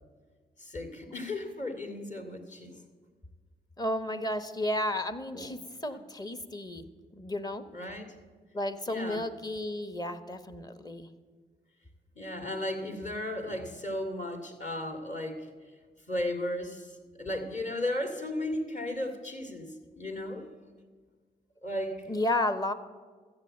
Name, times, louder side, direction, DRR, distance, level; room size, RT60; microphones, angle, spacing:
voice 1, 0.6-2.8 5.3-5.5 7.7-8.1 8.9-9.2 12.2-15.5 16.1-20.5 21.6-22.1, left 1 dB, 40° left, 5 dB, 2.2 m, -35 dB
voice 2, 3.8-6.8 7.1-7.6 8.5-11.1 22.1-22.7, left 1 dB, 20° left, 12 dB, 1.1 m, -32 dB
13.0 x 8.0 x 7.7 m, 1.5 s
supercardioid pair, 55°, 19 cm